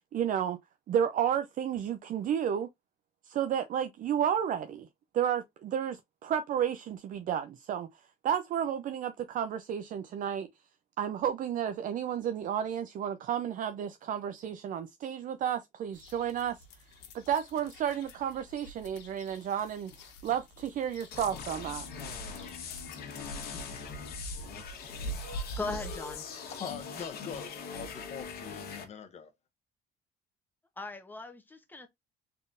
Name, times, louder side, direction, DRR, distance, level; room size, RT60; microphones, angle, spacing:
voice 1, 0.1-0.6 0.9-2.7 3.2-4.9 5.1-7.9 8.2-10.5 11.0-16.6 17.1-19.9 20.2-21.8, right 9 dB, 55° right, 0.5 m, -32 dB
sound 1, 15.9-26.1, right 1 dB, 90° left, 1.1 m, -45 dB
sound 2, 21.1-28.9, left 6 dB, 65° left, 1.4 m, -42 dB
voice 2, 22.2-23.1 26.3-29.3, left 7 dB, 40° left, 1.0 m, -44 dB
voice 3, 25.6-26.2 30.8-31.9, left 3 dB, 10° left, 1.0 m, -39 dB
4.1 x 3.7 x 2.5 m
cardioid pair, 110°, 17 cm